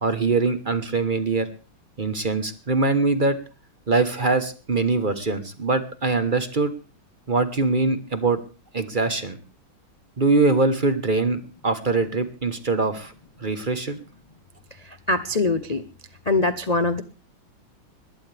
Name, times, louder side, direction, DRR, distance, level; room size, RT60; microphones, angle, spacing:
voice 1, 0.0-1.5 2.0-3.4 3.9-6.7 7.3-8.4 8.7-9.4 10.2-13.1 13.4-14.0, right 3 dB, 30° right, 10 dB, 1.1 m, -23 dB
voice 2, 14.8-15.8 16.3-17.0, left 3 dB, 65° left, 10 dB, 0.4 m, -23 dB
21.5 x 16.5 x 3.5 m, 0.35 s
omnidirectional pair, 2.3 m